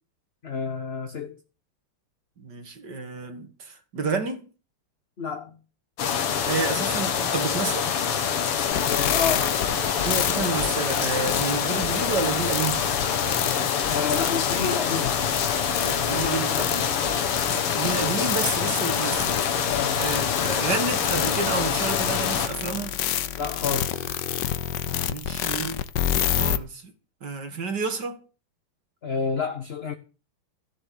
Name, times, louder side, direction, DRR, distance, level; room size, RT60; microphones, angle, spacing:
voice 1, 0.4-1.4 5.2-5.5 8.8-9.6 13.9-15.2 16.0-16.7 19.7-20.0 23.4-24.1 29.0-29.9, left 5 dB, 35° left, 1.2 m, -30 dB
voice 2, 2.4-4.4 6.4-7.9 10.0-12.8 15.8-16.9 17.5-19.4 20.0-22.9 24.9-25.8 26.4-26.9 27.2-28.2, right 4 dB, 50° right, 3.0 m, -30 dB
sound 1, 6.0-22.5, left 7 dB, 85° left, 2.5 m, -25 dB
sound 2, 8.7-26.6, left 10 dB, 60° left, 1.3 m, -30 dB
15.0 x 7.3 x 8.8 m
omnidirectional pair, 2.4 m